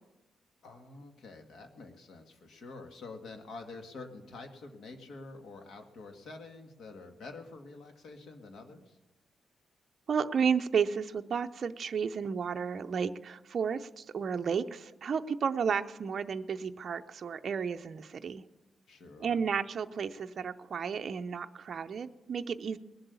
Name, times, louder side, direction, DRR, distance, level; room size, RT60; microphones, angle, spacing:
voice 1, 0.6-9.0 18.9-19.4, left 3 dB, 60° left, 5 dB, 1.9 m, -47 dB
voice 2, 10.1-18.4 19.2-22.8, right 6 dB, 40° right, 7 dB, 0.5 m, -32 dB
19.5 x 7.8 x 7.0 m, 1.0 s
wide cardioid pair, 160°, 0 cm